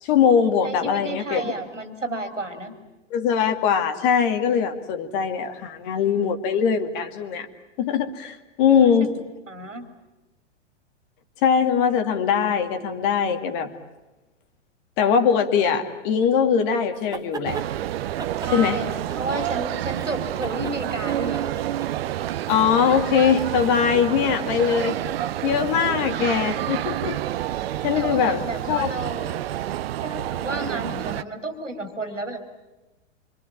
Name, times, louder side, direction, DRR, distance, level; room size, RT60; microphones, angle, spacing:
voice 1, 0.0-1.5 3.1-7.5 7.8-9.2 11.4-13.7 15.0-17.6 18.5-18.8 22.5-25.0 25.4-27.2 27.8-28.9, left 7 dB, 45° left, 7 dB, 2.4 m, -21 dB
voice 2, 0.6-2.8 8.7-8.9 9.5-9.9 18.4-18.9 19.2-21.5 28.0-29.3 30.0-32.4, right 2 dB, 90° right, 7 dB, 3.7 m, -32 dB
sound 1, 16.9-17.7 18.2-19.6 19.9-22.1, right 4 dB, 10° right, 1.8 m, -37 dB
sound 2, 17.4-31.2, right 12 dB, 55° right, 1.0 m, -29 dB
26.5 x 25.5 x 8.6 m, 1.1 s
figure-of-eight pair, 105°, 36 cm